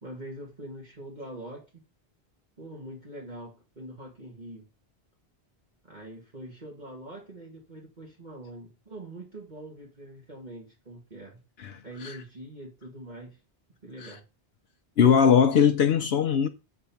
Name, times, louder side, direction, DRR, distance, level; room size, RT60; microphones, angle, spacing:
voice 1, 0.0-1.7 2.6-4.6 5.8-11.4 11.8-13.4 13.8-14.2, right 1 dB, 45° right, 2.2 m, -43 dB
voice 2, 11.6-12.2 14.0-14.2 15.0-16.5, left 7 dB, 70° left, 0.9 m, -21 dB
8.5 x 4.5 x 7.0 m
omnidirectional pair, 1.1 m